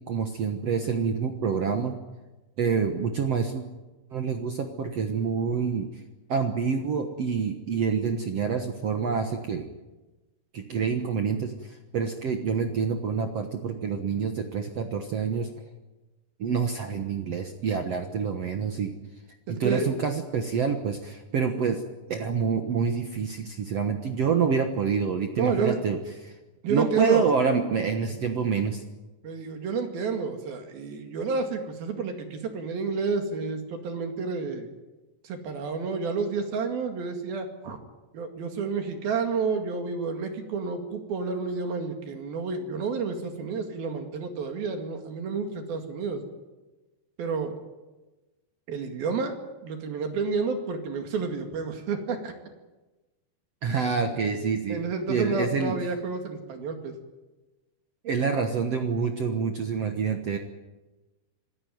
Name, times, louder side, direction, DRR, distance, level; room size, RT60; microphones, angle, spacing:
voice 1, 0.0-2.0 2.6-3.6 4.1-5.9 6.3-9.7 10.5-15.5 16.4-18.9 19.6-21.8 22.1-26.3 26.7-28.8 53.6-54.8 55.1-55.7 58.0-60.4, right 6 dB, 75° right, 5 dB, 1.4 m, -27 dB
voice 2, 19.5-19.9 25.4-25.8 26.6-27.3 29.2-34.7 35.2-37.8 38.1-46.2 47.2-47.5 48.7-49.4 49.6-52.3 54.7-56.9, right 4 dB, 60° right, 5 dB, 3.8 m, -30 dB
26.5 x 15.5 x 9.4 m, 1.1 s
omnidirectional pair, 5.0 m